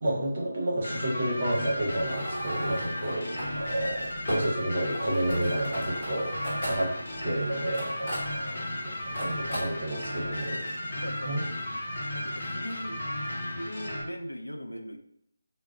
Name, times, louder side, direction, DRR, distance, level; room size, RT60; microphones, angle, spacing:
voice 1, 0.0-3.3 3.6-6.3 6.6-6.9 7.2-8.1 8.8-10.7 11.2-11.4, right 1 dB, 45° right, -2 dB, 0.9 m, -30 dB
sound 1, 0.8-14.0, left 1 dB, 50° left, 0.7 m, -34 dB
sound 2, 1.9-12.5, equal, 35° left, 1.1 m, -39 dB
voice 2, 3.1-3.8 6.5-6.7 8.0-8.7 10.9-11.4 11.7-11.8 12.1-13.0 13.6-15.0, equal, 85° left, 6 dB, 0.4 m, -40 dB
2.3 x 2.0 x 3.6 m, 0.72 s
figure-of-eight pair, 160°, 0 cm